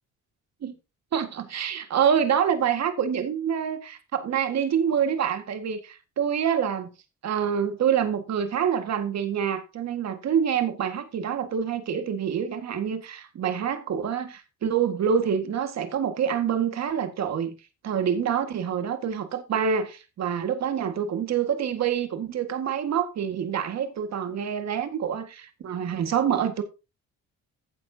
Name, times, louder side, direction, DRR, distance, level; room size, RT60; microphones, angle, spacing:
voice 1, 1.1-6.9 7.2-17.5 17.8-26.6, right 8 dB, 60° right, 1.8 m, -26 dB
15.0 x 7.3 x 2.8 m
cardioid pair, 90°, 30 cm